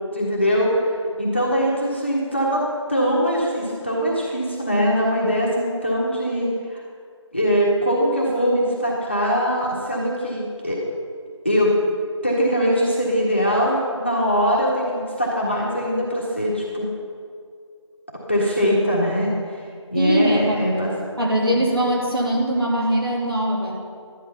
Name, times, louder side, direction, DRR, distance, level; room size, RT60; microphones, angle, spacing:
voice 1, 0.1-0.9 1.2-2.6 2.9-6.8 7.3-10.8 11.4-11.7 12.2-16.9 18.3-19.3 19.9-20.9 21.5-21.6, equal, 20° left, -4 dB, 1.5 m, -22 dB
voice 2, 19.9-20.6 21.2-23.7, right 1 dB, 50° right, -2 dB, 3.1 m, -21 dB
13.0 x 11.0 x 5.7 m, 2.1 s
figure-of-eight pair, 180°, 16 cm